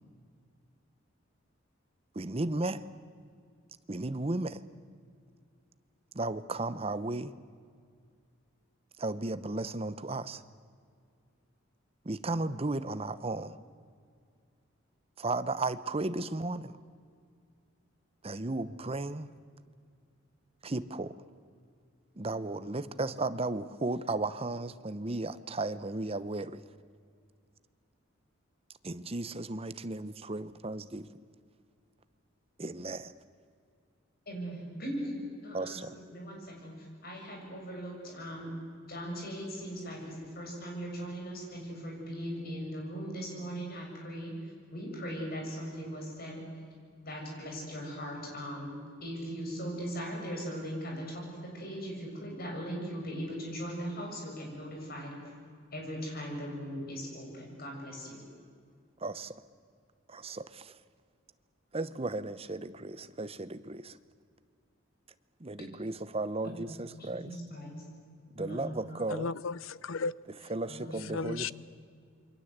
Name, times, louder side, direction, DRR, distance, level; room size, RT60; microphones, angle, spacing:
voice 1, 2.1-2.8 3.9-4.6 6.1-7.4 9.0-10.4 12.0-13.6 15.2-16.7 18.2-19.3 20.6-21.2 22.2-26.6 28.8-31.1 32.6-33.1 35.5-36.0 59.0-59.4 60.1-60.8 61.7-64.0 65.4-67.3 68.3-69.3 70.5-71.5, right 2 dB, 30° right, 13 dB, 0.8 m, -35 dB
voice 2, 34.3-35.8 36.1-44.3 44.7-46.4 47.0-48.7 49.0-55.2 55.7-58.2 66.4-67.8 68.4-69.0 70.7-71.2, equal, 50° left, 0 dB, 7.5 m, -39 dB
voice 3, 69.1-70.1 71.1-71.5, left 4 dB, 80° left, 19 dB, 0.6 m, -34 dB
28.0 x 23.5 x 8.1 m, 2.2 s
head